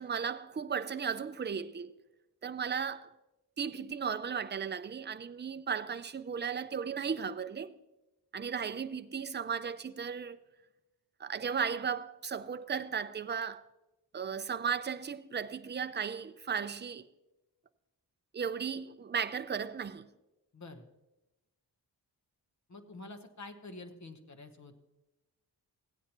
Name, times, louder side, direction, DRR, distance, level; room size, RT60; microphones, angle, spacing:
voice 1, 0.0-1.9 2.4-3.1 3.6-7.7 8.3-10.4 11.2-13.6 14.1-17.1 18.3-20.1, right 6 dB, 25° right, 0.4 m, -35 dB
voice 2, 20.5-20.8 22.7-24.8, left 2 dB, 40° left, 1.0 m, -48 dB
15.5 x 9.2 x 2.9 m
wide cardioid pair, 85°, 43 cm